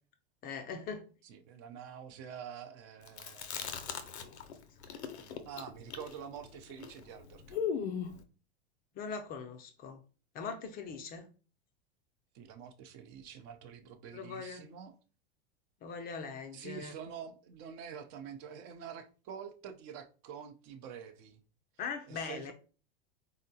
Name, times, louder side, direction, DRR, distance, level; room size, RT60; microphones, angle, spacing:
voice 1, 0.4-1.1 4.9-5.0 9.0-10.0 10.3-11.2 14.1-14.7 15.8-16.9 21.8-22.5, left 5 dB, 30° left, 0.4 m, -41 dB
voice 2, 1.2-3.8 5.5-7.8 12.3-14.9 16.5-21.4 22.1-22.5, right 7 dB, 50° right, 0.6 m, -47 dB
Chewing mastication, 3.1-4.5 4.8-8.2, left 7 dB, 90° left, 0.5 m, -38 dB
3.7 x 2.1 x 2.7 m
hypercardioid pair, 105°, 32 cm